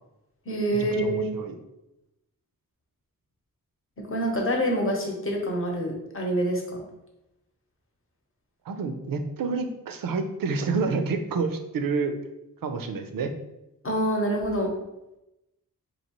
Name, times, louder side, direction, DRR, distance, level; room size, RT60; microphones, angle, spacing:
voice 1, 0.5-1.2 4.1-6.8 13.8-14.7, right 1 dB, 35° left, 0 dB, 0.9 m, -26 dB
voice 2, 1.0-1.5 8.7-12.1 12.6-13.3, right 4 dB, 70° right, 7 dB, 0.5 m, -28 dB
4.2 x 2.9 x 2.9 m, 0.94 s
wide cardioid pair, 110°, 35 cm